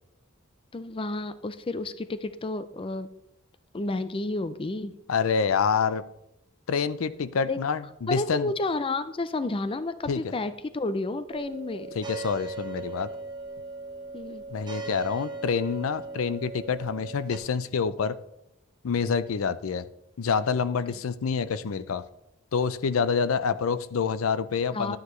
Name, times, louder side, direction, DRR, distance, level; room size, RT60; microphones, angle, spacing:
voice 1, 0.7-3.1 3.7-5.0 7.5-7.6 8.1-11.9 14.1-14.4 24.7-25.0, left 2 dB, 25° left, 12 dB, 0.5 m, -31 dB
voice 2, 5.1-6.0 6.7-8.5 10.1-10.2 12.0-13.1 14.5-18.2 18.8-19.9 20.2-22.0 22.5-25.0, left 6 dB, 80° left, 14 dB, 0.5 m, -27 dB
sound 1, 11.3-17.4, right 3 dB, 20° right, 1.1 m, -38 dB
11.5 x 9.4 x 3.1 m, 0.83 s
head